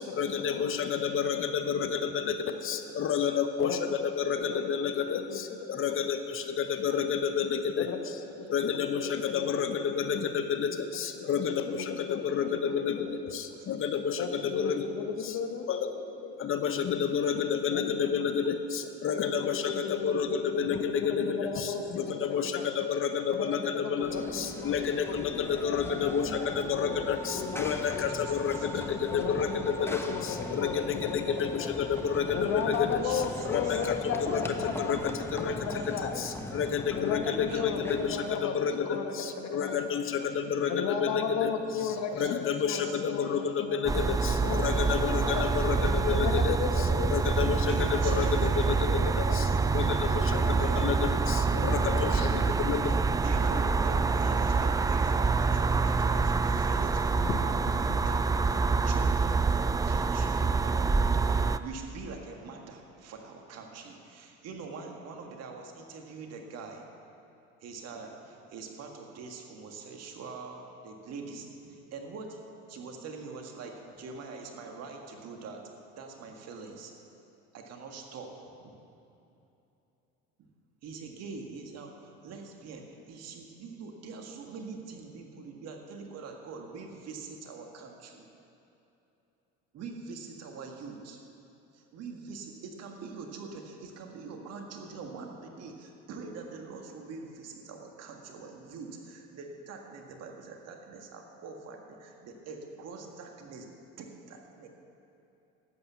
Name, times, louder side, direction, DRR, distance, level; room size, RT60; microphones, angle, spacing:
voice 1, 0.0-2.4 2.6-7.9 8.5-14.8 15.2-15.3 15.7-15.9 16.4-33.0 33.4-35.7 36.0-41.5 42.2-49.5 49.7-52.3 52.6-53.0 57.2-57.4, left 7 dB, 45° left, 8 dB, 1.0 m, -30 dB
voice 2, 2.2-2.8 3.6-5.4 5.8-5.9 7.8-8.0 8.4-8.5 8.8-9.5 10.1-10.8 11.1-11.9 12.2-13.4 14.2-16.8 17.7-18.4 19.1-22.6 23.3-26.5 26.7-28.4 29.1-31.8 32.3-36.3 36.9-39.9 40.7-45.5 46.1-47.1 47.4-47.5 47.8-48.5 48.9-50.7 51.5-52.5, left 6 dB, 65° left, 6 dB, 1.3 m, -36 dB
voice 3, 13.0-13.7 19.0-19.1 22.7-22.8 27.9-28.0 28.2-28.7 32.0-32.1 32.5-32.6 33.0-33.8 35.4-36.0 37.3-38.3 40.2-40.8 41.7-42.3 42.8-43.0 47.1-47.3 47.7-49.1 50.2-51.0 52.8-58.2 58.5-66.8 67.6-72.4 72.7-75.6 76.0-76.9 77.5-78.3 78.6-78.7 80.8-88.3 89.7-91.2 91.7-103.7 104.0-104.7, right 4 dB, 60° right, 2 dB, 1.9 m, -44 dB
Run / Train, 24.0-38.5, left 1 dB, 10° left, 1.1 m, -39 dB
sound 1, 43.9-61.6, right 4 dB, 10° right, 0.3 m, -26 dB
12.0 x 8.5 x 7.0 m, 2.8 s
supercardioid pair, 80°, 30 cm